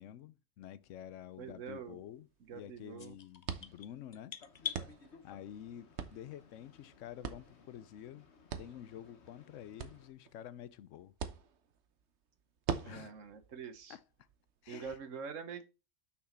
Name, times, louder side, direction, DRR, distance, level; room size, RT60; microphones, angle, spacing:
voice 1, 0.0-4.4 5.2-8.3 8.6-11.1 12.8-13.1 13.9-14.3 14.6-15.0, left 11 dB, 80° left, 0.9 m, -49 dB
sound 1, 0.8-15.0, right 7 dB, 65° right, 1.1 m, -46 dB
voice 2, 1.4-2.0 2.5-3.1 12.9-14.0 14.7-15.6, right 6 dB, 80° right, 1.4 m, -45 dB
sound 2, 3.0-4.9, left 7 dB, 40° left, 0.6 m, -43 dB
Boat Water vehicle, 4.4-10.1, left 5 dB, 60° left, 1.3 m, -61 dB
6.1 x 6.1 x 4.3 m
omnidirectional pair, 1.3 m